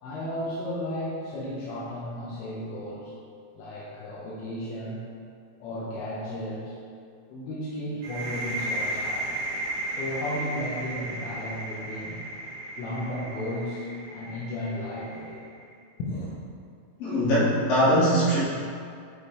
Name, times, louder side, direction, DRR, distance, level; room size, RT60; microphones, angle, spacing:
voice 1, 0.0-3.1 3.5-5.0 5.6-6.7 7.3-9.3 10.0-12.2 12.8-15.4 16.0-16.3, left 1 dB, 85° left, -7 dB, 3.7 m, -34 dB
sound 1, 8.0-15.6, right 1 dB, 50° right, 2.3 m, -35 dB
voice 2, 17.0-18.5, equal, 55° left, -8 dB, 3.0 m, -21 dB
11.0 x 5.4 x 3.3 m, 2.3 s
omnidirectional pair, 5.7 m